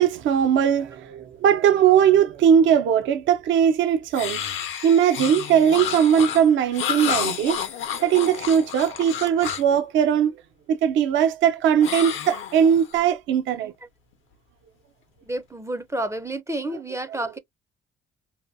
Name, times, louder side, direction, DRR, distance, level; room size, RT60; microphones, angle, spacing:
voice 1, 0.0-4.4 4.8-7.6 8.0-10.3 10.7-13.7, right 8 dB, 75° right, 0.5 m, -19 dB
sound 1, 4.1-9.8 11.8-13.0, left 8 dB, 80° left, 0.6 m, -30 dB
voice 2, 15.3-17.4, right 1 dB, 15° right, 0.4 m, -30 dB
2.7 x 2.2 x 2.5 m
cardioid pair, 90°, 20 cm